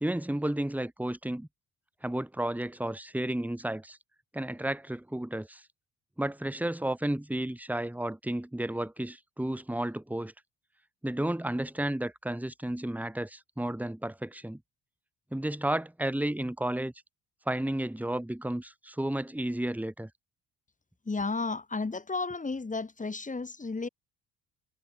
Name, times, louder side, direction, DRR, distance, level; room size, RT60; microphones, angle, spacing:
voice 1, 0.0-1.5 2.0-4.0 4.3-5.6 6.2-10.3 11.0-14.6 15.3-16.9 17.5-20.1, right 1 dB, 5° right, 2.1 m, -32 dB
voice 2, 21.1-23.9, left 3 dB, 15° left, 1.5 m, -33 dB
figure-of-eight pair, 50°, 50 cm